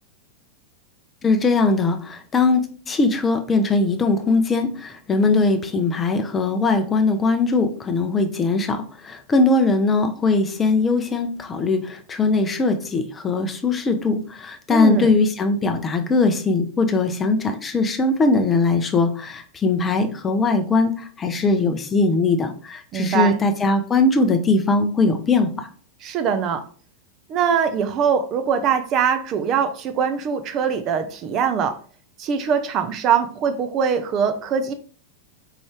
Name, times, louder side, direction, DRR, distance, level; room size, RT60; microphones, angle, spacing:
voice 1, 1.2-25.7, left 3 dB, 20° left, 7 dB, 0.5 m, -20 dB
voice 2, 14.7-15.1 22.9-23.4 26.0-26.6 27.3-31.8 32.2-34.7, right 7 dB, 35° right, 7 dB, 0.5 m, -22 dB
4.7 x 2.6 x 3.2 m, 0.42 s
figure-of-eight pair, 90°, 0 cm